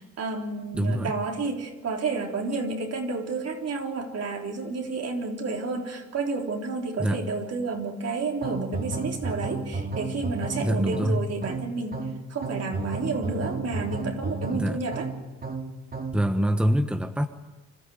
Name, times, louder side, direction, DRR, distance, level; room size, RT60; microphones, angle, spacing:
voice 1, 0.0-12.0 12.3-15.1, right 3 dB, 55° right, 2 dB, 3.9 m, -31 dB
voice 2, 0.7-1.1 7.0-7.2 10.6-11.2 14.5-14.8 16.1-17.3, equal, 5° right, 7 dB, 1.3 m, -25 dB
sound 1, 8.4-16.3, right 3 dB, 30° right, 2.4 m, -33 dB
26.0 x 14.0 x 9.5 m, 1.1 s
cardioid pair, 90°, 30 cm